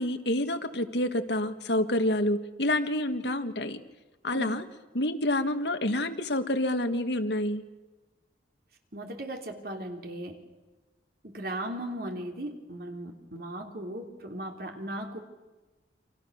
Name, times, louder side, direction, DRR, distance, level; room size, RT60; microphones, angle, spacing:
voice 1, 0.0-3.8 4.2-4.6 4.9-7.6, left 1 dB, 80° left, 7 dB, 1.9 m, -28 dB
voice 2, 8.9-10.4 11.2-15.2, right 1 dB, 60° right, 3 dB, 3.5 m, -37 dB
29.0 x 26.0 x 6.6 m, 1.2 s
head